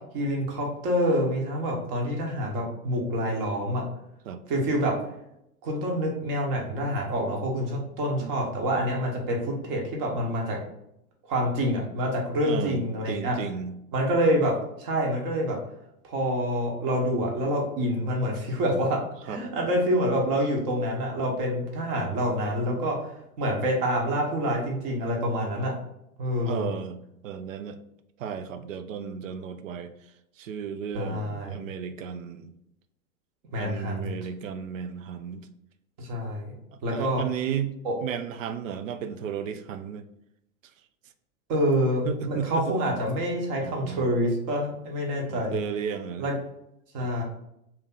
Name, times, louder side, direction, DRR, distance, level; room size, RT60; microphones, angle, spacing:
voice 1, 0.1-3.8 4.5-4.9 5.6-10.6 11.3-13.4 13.9-15.6 16.0-25.7 26.2-26.7 30.9-31.5 33.5-34.1 36.0-36.5 36.8-37.2 37.8-37.9 41.5-45.6 46.2-46.3 46.9-47.2, equal, 40° right, 0 dB, 1.2 m, -27 dB
voice 2, 12.4-13.8 19.3-19.4 26.5-27.8 28.2-32.5 33.6-35.5 36.7-40.0 42.0-42.8 43.6-44.1 45.3-46.3 47.0-47.1, right 7 dB, 60° right, 10 dB, 0.5 m, -34 dB
3.4 x 2.9 x 3.7 m, 0.80 s
figure-of-eight pair, 95°, 44 cm